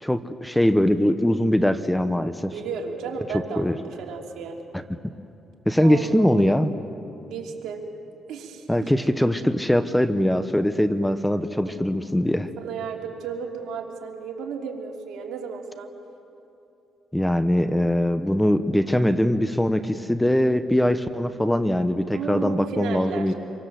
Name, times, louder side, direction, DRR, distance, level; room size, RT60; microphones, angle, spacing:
voice 1, 0.0-2.5 3.3-3.8 4.7-4.8 5.7-6.7 8.7-12.5 17.1-23.3, left 1 dB, 5° left, 11 dB, 1.1 m, -22 dB
voice 2, 2.5-4.6 5.8-6.6 7.3-7.8 8.3-8.9 11.6-11.7 12.6-15.9 22.1-23.3, right 6 dB, 80° right, 1 dB, 3.2 m, -33 dB
26.5 x 24.5 x 7.8 m, 2.8 s
cardioid pair, 90°, 0 cm